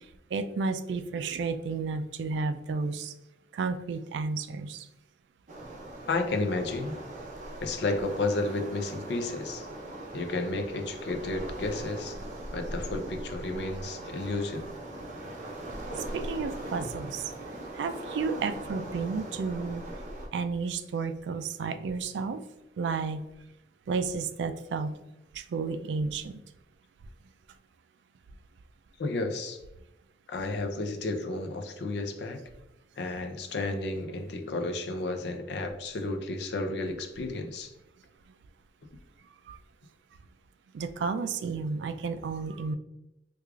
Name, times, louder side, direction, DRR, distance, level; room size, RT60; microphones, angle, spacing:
voice 1, 0.3-3.1 3.5-4.8 16.1-17.2 17.8-19.8 20.3-22.4 22.8-23.2 23.9-24.9 25.5-26.3 39.5-39.6 40.7-42.8, right 4 dB, 80° right, 11 dB, 0.3 m, -32 dB
Waves surf, 5.5-20.3, right 1 dB, 45° right, 0.7 m, -40 dB
voice 2, 6.1-7.0 7.6-9.7 10.1-12.2 12.5-14.7 29.0-29.6 30.3-32.4 33.0-37.7, left 2 dB, 70° left, 6 dB, 0.5 m, -32 dB
4.6 x 2.3 x 2.3 m, 0.93 s
head